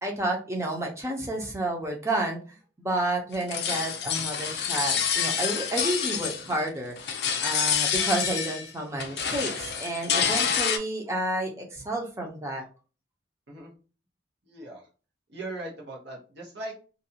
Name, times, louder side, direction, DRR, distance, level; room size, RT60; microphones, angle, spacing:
voice 1, 0.0-2.4 2.8-6.9 7.4-12.6, right 1 dB, 15° right, 0 dB, 0.6 m, -30 dB
sound 1, 3.3-6.7 7.0-8.7 9.0-10.8, left 7 dB, 60° left, 0.4 m, -27 dB
voice 2, 14.5-14.9 15.3-16.9, right 2 dB, 70° right, -3 dB, 0.9 m, -39 dB
2.6 x 2.3 x 2.7 m, 0.35 s
head